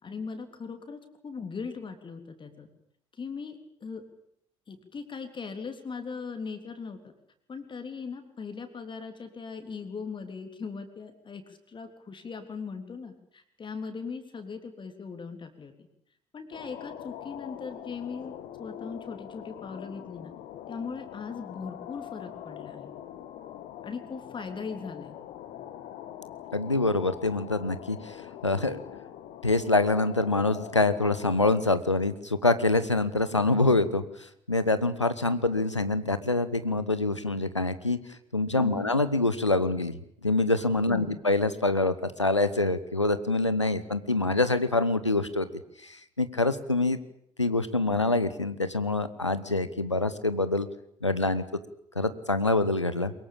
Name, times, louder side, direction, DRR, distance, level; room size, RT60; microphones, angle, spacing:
voice 1, 0.0-2.7 3.2-4.0 4.7-7.1 7.5-15.9 16.3-20.3 20.7-23.0 23.8-25.2 38.6-38.9 40.9-41.2, left 5 dB, 35° left, 6 dB, 3.5 m, -39 dB
sound 1, 16.5-31.6, left 11 dB, 55° left, 2.0 m, -43 dB
voice 2, 26.5-28.2 28.4-28.8 29.4-34.0 34.5-40.0 40.2-45.5 45.8-47.0 47.4-50.7 51.0-51.4 51.9-53.1, left 2 dB, 90° left, 13 dB, 1.0 m, -25 dB
23.5 x 22.0 x 8.8 m, 0.71 s
figure-of-eight pair, 50°, 15 cm